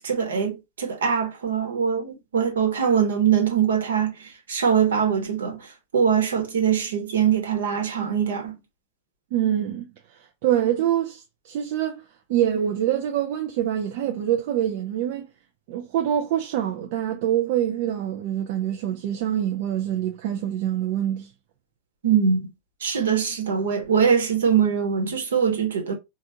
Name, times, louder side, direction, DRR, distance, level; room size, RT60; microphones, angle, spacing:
voice 1, 0.0-5.7 5.9-8.5 22.0-22.5 22.8-25.9, right 7 dB, 65° right, 1.2 m, -22 dB
voice 2, 9.3-9.9 10.4-12.0 12.3-15.3 15.7-21.3, right 11 dB, 50° right, 0.5 m, -25 dB
4.3 x 2.4 x 2.7 m
figure-of-eight pair, 90°, 0 cm